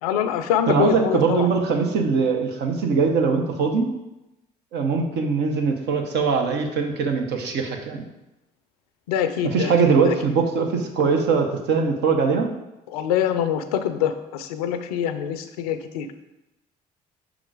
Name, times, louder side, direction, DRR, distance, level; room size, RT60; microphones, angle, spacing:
voice 1, 0.0-1.5 9.1-10.2 12.9-16.2, left 9 dB, 90° left, 9 dB, 0.4 m, -25 dB
voice 2, 0.7-3.9 4.7-8.1 9.5-12.5, right 5 dB, 65° right, 3 dB, 1.0 m, -21 dB
5.1 x 3.8 x 4.7 m, 0.94 s
hypercardioid pair, 60°, 19 cm